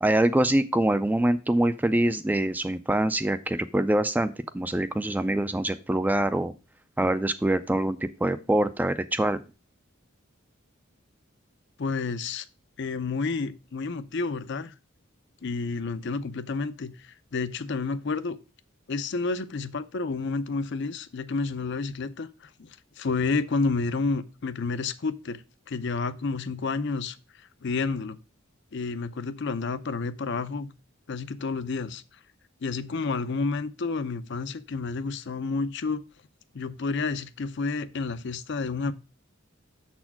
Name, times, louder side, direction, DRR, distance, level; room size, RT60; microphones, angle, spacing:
voice 1, 0.0-6.5 7.0-9.4, right 1 dB, 10° right, 0.3 m, -24 dB
voice 2, 11.8-12.4 12.8-14.7 15.4-18.4 18.9-22.3 22.6-25.4 25.7-27.2 27.6-28.2 28.7-30.7 31.1-32.0 32.6-36.0 36.5-38.9, left 4 dB, 55° left, 0.5 m, -30 dB
6.9 x 4.3 x 5.7 m
head